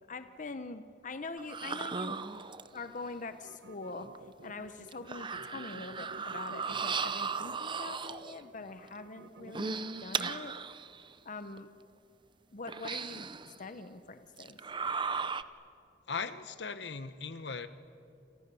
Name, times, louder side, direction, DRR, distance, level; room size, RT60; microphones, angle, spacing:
voice 1, 0.1-2.2 2.7-4.1 4.4-10.5 11.2-11.7 12.5-14.6, left 3 dB, 45° left, 10 dB, 0.9 m, -44 dB
sound 1, 1.4-2.9 4.2-4.3 4.9-8.4 9.4-11.0 11.6-11.7 12.7-13.6 14.4-15.4, right 5 dB, 25° right, 0.7 m, -36 dB
sound 2, 3.3-10.0, right 2 dB, 80° right, 1.3 m, -53 dB
voice 2, 16.1-17.7, left 5 dB, 70° left, 12 dB, 1.2 m, -38 dB
29.0 x 29.0 x 7.0 m, 2.6 s
head